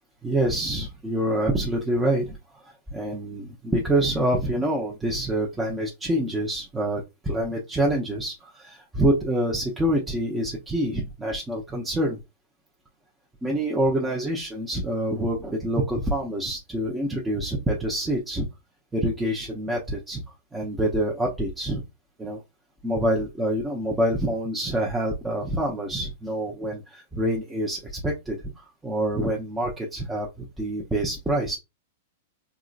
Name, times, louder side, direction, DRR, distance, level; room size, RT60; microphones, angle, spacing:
voice 1, 0.2-12.2 13.4-18.5 18.9-20.2 20.5-21.8 22.2-22.4 22.8-31.6, right 1 dB, 10° right, -2 dB, 0.8 m, -26 dB
3.7 x 3.0 x 2.4 m, 0.24 s
hypercardioid pair, 115°, 0 cm